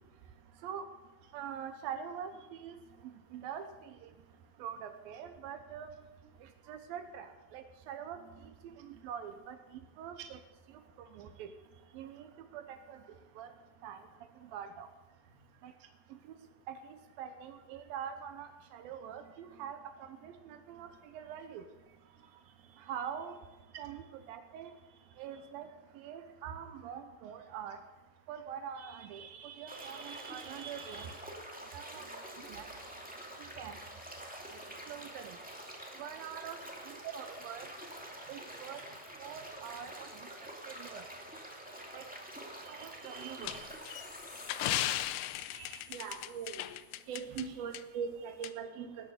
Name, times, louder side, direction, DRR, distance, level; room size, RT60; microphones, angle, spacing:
voice 1, 1.3-2.8 3.1-4.1 4.6-5.9 6.4-10.4 10.7-11.5 11.9-13.5 13.8-14.1 14.4-14.9 15.6-15.7 16.1-16.4 16.7-21.7 22.7-23.4 23.8-24.8 25.2-25.7 25.9-27.8 28.3-31.2 31.7-32.7 33.4-33.8 34.9-35.4 36.0-37.7 38.3-38.8 39.2-41.0 41.9-42.0 42.6-43.7 45.4-45.9 47.3-47.7 48.4-48.5, right 8 dB, 80° right, 8 dB, 2.6 m, -45 dB
sound 1, 29.7-44.9, right 1 dB, 5° right, 1.3 m, -47 dB
sound 2, 43.4-47.4 47.8-47.9 48.4-48.5, left 14 dB, 90° left, 2.6 m, -36 dB
voice 2, 45.9-46.7 47.1-49.1, right 7 dB, 50° right, 4 dB, 2.4 m, -40 dB
19.5 x 10.0 x 6.7 m, 1.1 s
omnidirectional pair, 4.2 m